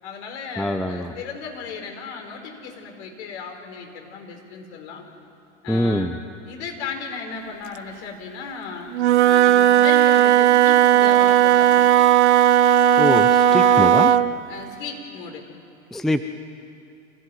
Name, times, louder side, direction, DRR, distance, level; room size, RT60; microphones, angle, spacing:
voice 1, 0.0-5.0 5.6-6.1 6.5-8.9 9.2-12.0 13.5-13.9 14.5-15.4, left 5 dB, 55° left, 3 dB, 4.8 m, -35 dB
voice 2, 0.6-1.1 5.7-6.2 13.0-14.1 15.9-16.2, equal, ahead, 9 dB, 0.7 m, -23 dB
Wind instrument woodwind instrument, 8.9-14.3, right 10 dB, 60° right, 0.9 m, -15 dB
26.0 x 16.5 x 9.5 m, 2.6 s
figure-of-eight pair, 90°, 39 cm